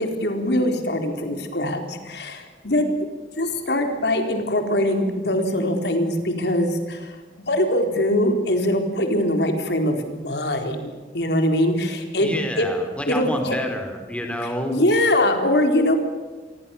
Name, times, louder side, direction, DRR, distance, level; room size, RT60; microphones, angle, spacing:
voice 1, 0.0-3.1 3.4-7.1 7.5-12.3 12.6-12.7 13.1-13.6 14.7-16.0, left 1 dB, 65° left, 5 dB, 4.1 m, -22 dB
voice 2, 12.2-14.8, equal, 5° left, 5 dB, 3.9 m, -28 dB
28.0 x 23.0 x 7.2 m, 1.3 s
head